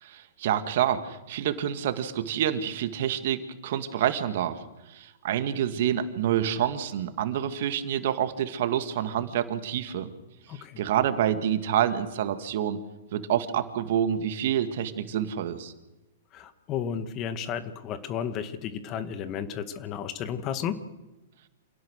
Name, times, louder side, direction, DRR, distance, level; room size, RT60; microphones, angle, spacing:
voice 1, 0.0-4.6 4.9-10.1 10.8-12.8 13.1-15.7, right 10 dB, 60° right, 9 dB, 2.1 m, -27 dB
voice 2, 10.5-10.8 16.3-20.8, left 8 dB, 35° left, 10 dB, 1.9 m, -33 dB
28.0 x 17.5 x 6.5 m, 0.99 s
hypercardioid pair, 110°, 0 cm